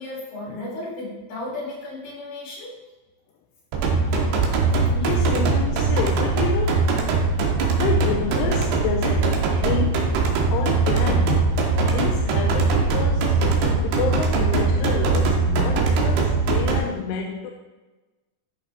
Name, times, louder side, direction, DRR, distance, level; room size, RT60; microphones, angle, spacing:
voice 1, 0.0-2.7, left 2 dB, 65° left, -5 dB, 4.8 m, -34 dB
sound 1, 3.7-16.8, right 4 dB, 85° right, 3.1 m, -21 dB
voice 2, 5.0-6.9 7.7-10.1 10.5-11.5 11.9-13.4 13.8-17.5, left 8 dB, 85° left, 1 dB, 2.8 m, -29 dB
12.5 x 5.9 x 3.2 m, 1.1 s
omnidirectional pair, 4.7 m